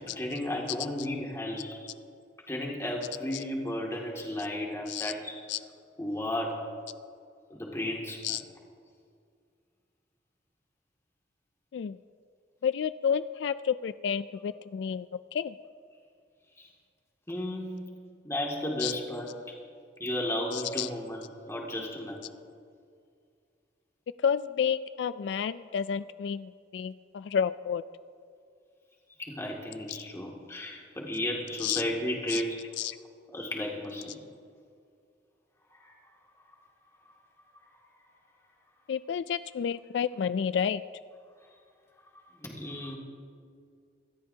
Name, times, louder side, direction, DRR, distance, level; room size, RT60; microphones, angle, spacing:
voice 1, 0.0-1.9 2.5-5.3 6.0-6.6 7.5-8.4 16.6-16.7 17.3-17.8 18.2-19.5 20.0-22.2 29.2-32.6 33.3-34.2 35.8-35.9 42.4-43.0, left 1 dB, 15° left, -2 dB, 2.3 m, -34 dB
voice 2, 12.6-15.5 18.8-18.9 20.5-20.9 24.2-27.8 29.9-30.0 31.6-31.8 32.3-32.4 32.8-33.0 38.9-40.8, left 7 dB, 80° left, 15 dB, 0.3 m, -30 dB
26.0 x 13.0 x 2.8 m, 2.3 s
head